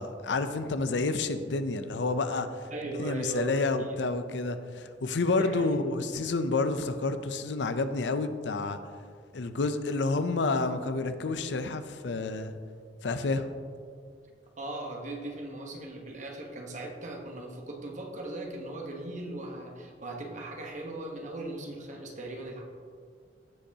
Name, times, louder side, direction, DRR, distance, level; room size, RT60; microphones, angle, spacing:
voice 1, 0.0-2.5 3.0-8.8 9.3-12.5 13.0-13.5, left 3 dB, 85° left, 10 dB, 0.6 m, -29 dB
voice 2, 2.7-4.0 5.4-5.8 14.6-22.6, right 2 dB, 45° right, 1 dB, 1.2 m, -38 dB
16.0 x 5.4 x 2.8 m, 2.1 s
head